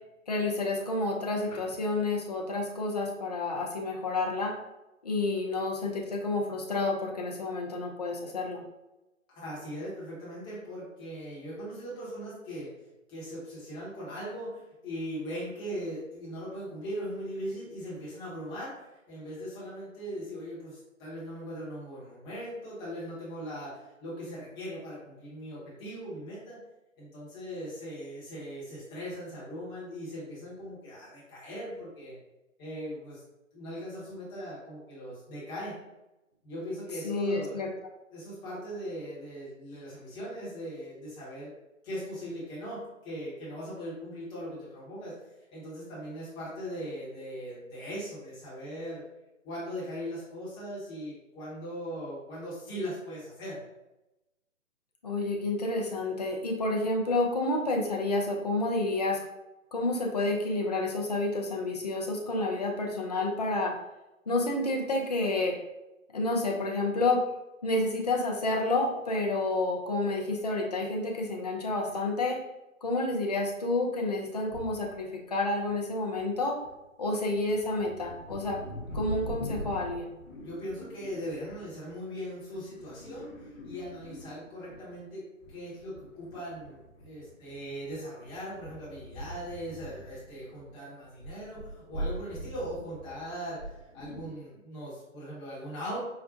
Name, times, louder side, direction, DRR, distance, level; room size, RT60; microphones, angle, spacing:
voice 1, 0.3-4.6 5.0-8.6 37.0-37.7 55.0-59.2 59.7-63.8 64.3-65.6 66.1-67.3 67.6-72.4 72.8-76.6 77.0-78.6 78.9-80.1, left 2 dB, 35° left, 0 dB, 0.4 m, -29 dB
voice 2, 9.3-12.7 13.1-18.7 19.1-26.6 27.0-32.1 32.6-33.2 33.5-35.7 36.4-37.7 38.1-41.5 41.8-45.2 45.5-49.0 49.4-53.6 80.4-83.3 83.6-96.0, equal, 10° left, -8 dB, 0.9 m, -39 dB
sound 1, 74.5-75.0 75.6-76.3 76.6-85.0 85.4-90.7 91.0-94.3, equal, 60° left, 0.9 m, -42 dB
4.9 x 2.1 x 2.5 m, 0.97 s
figure-of-eight pair, 135°, 40 cm